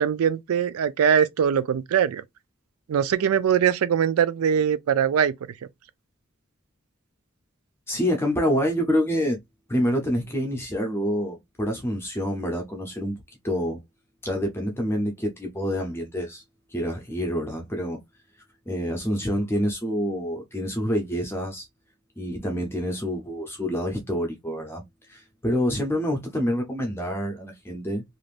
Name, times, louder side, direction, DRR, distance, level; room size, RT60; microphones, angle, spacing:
voice 1, 0.0-2.2 2.9-5.3, right 8 dB, 85° right, 0.4 m, -22 dB
voice 2, 7.9-9.4 9.7-13.2 13.4-13.8 14.2-16.4 16.7-18.0 18.7-21.7 22.2-24.8 25.1-28.0, equal, 10° left, 0.6 m, -27 dB
3.3 x 2.5 x 2.4 m
head